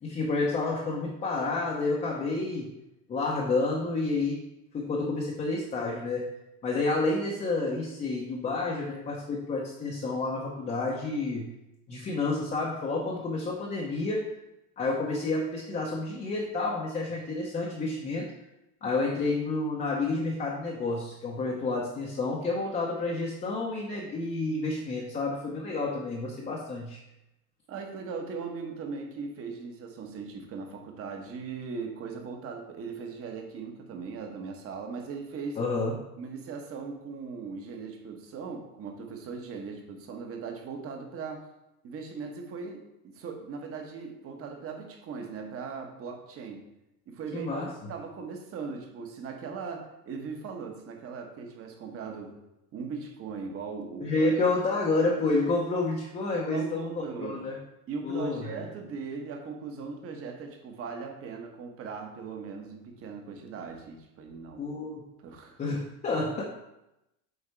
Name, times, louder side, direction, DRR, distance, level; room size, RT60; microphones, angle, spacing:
voice 1, 0.0-2.7 3.1-4.4 4.7-6.3 6.6-11.5 11.9-14.3 14.8-18.3 18.8-27.0 35.6-36.0 47.3-47.7 54.0-57.6 58.0-58.6 64.6-65.0 65.6-66.4, left 3 dB, 15° left, -3 dB, 0.9 m, -29 dB
voice 2, 27.7-35.6 36.2-41.5 41.8-46.6 47.1-52.3 52.7-54.3 56.4-57.4 57.9-64.7 65.2-65.6, right 5 dB, 30° right, 3 dB, 1.1 m, -39 dB
8.1 x 4.2 x 4.5 m, 0.90 s
supercardioid pair, 145°, 46 cm